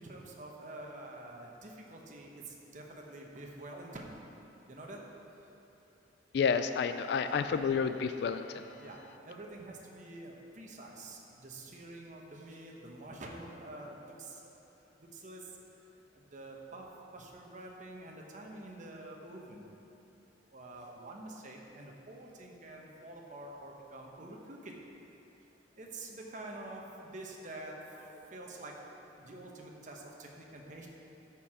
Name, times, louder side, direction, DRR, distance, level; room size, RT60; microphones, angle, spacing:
voice 1, 0.0-4.1 4.7-5.0 5.4-5.6 5.9-6.0 7.2-7.8 8.8-14.6 15.0-15.6 16.1-16.9 17.1-19.6 20.5-24.7 25.8-30.9, right 2 dB, 45° right, 0 dB, 1.0 m, -47 dB
voice 2, 6.3-8.7, left 6 dB, 65° left, 9 dB, 0.3 m, -30 dB
13.0 x 4.6 x 4.9 m, 2.8 s
head